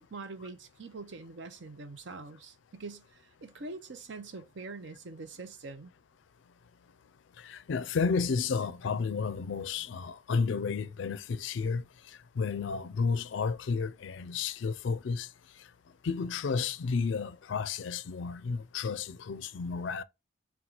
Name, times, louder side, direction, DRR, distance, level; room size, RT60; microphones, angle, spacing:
voice 1, 0.0-5.9, right 3 dB, 65° right, 0.6 m, -44 dB
voice 2, 7.4-11.8 12.4-15.3 16.0-20.0, left 5 dB, 70° left, 0.4 m, -32 dB
4.4 x 2.3 x 3.8 m
head